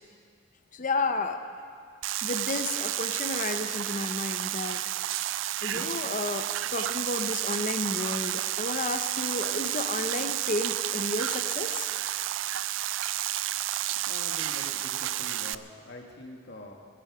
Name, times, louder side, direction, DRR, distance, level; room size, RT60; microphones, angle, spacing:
voice 1, 0.7-1.4 2.2-4.8 5.6-11.9, left 3 dB, 40° left, 7 dB, 0.7 m, -32 dB
sound 1, 2.0-15.5, right 13 dB, 70° right, 0.4 m, -31 dB
Dog, 5.3-10.6, left 1 dB, 15° left, 2.1 m, -54 dB
voice 2, 14.1-16.7, left 1 dB, 55° left, 1 dB, 1.9 m, -44 dB
25.5 x 10.0 x 4.9 m, 2.2 s
head